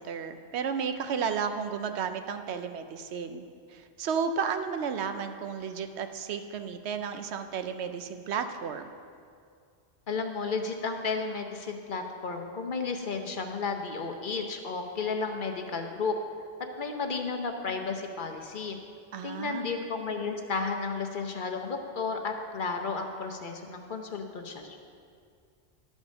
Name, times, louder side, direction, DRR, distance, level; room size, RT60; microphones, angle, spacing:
voice 1, 0.0-8.9 19.1-19.8, right 6 dB, 75° right, 8 dB, 0.9 m, -33 dB
voice 2, 10.1-16.1 16.8-18.8 19.2-24.8, left 4 dB, 50° left, 4 dB, 0.8 m, -33 dB
11.5 x 5.3 x 6.3 m, 2.3 s
omnidirectional pair, 1.1 m